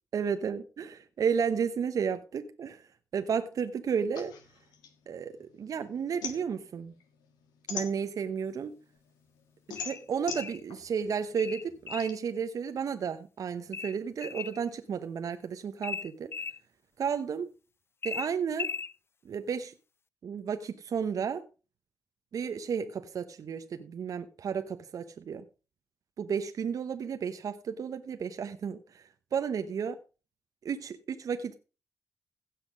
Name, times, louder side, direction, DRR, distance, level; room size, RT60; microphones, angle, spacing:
voice 1, 0.1-2.8 3.1-4.3 5.1-6.9 7.7-8.7 9.7-16.3 17.0-17.5 18.0-18.7 19.2-19.7 20.2-21.4 22.3-25.4 26.2-30.0 30.6-31.5, right 6 dB, 60° right, 1.0 m, -32 dB
sound 1, 4.2-5.7 6.0-8.5 9.0-12.1, left 6 dB, 75° left, 1.8 m, -41 dB
sound 2, 9.8-10.6 11.4-12.2 13.7-14.6 15.8-16.6 18.0-18.9, left 5 dB, 35° left, 0.5 m, -37 dB
16.0 x 5.8 x 5.1 m
hypercardioid pair, 45°, 7 cm